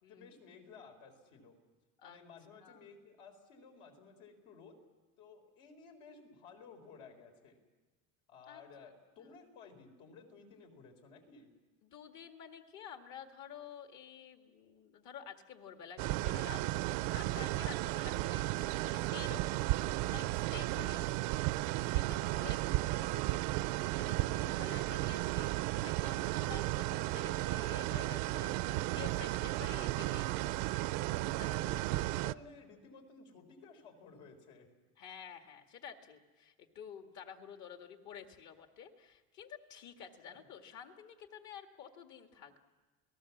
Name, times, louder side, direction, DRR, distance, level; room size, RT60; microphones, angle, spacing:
voice 1, 0.1-1.6 2.0-4.8 5.2-7.6 8.3-11.5 17.7-18.0 20.9-21.1 21.3-21.5 22.4-22.9 26.5-26.7 31.6-34.7 40.2-40.5, left 5 dB, 75° left, 4 dB, 4.6 m, -56 dB
voice 2, 11.8-19.6 20.0-21.1 21.9-22.6 22.9-30.6 31.3-32.1 35.0-42.6, left 8 dB, 55° left, 5 dB, 2.2 m, -51 dB
sound 1, 16.0-32.3, right 18 dB, 65° right, 0.6 m, -34 dB
29.0 x 18.5 x 7.4 m, 1.3 s
cardioid pair, 140°, 34 cm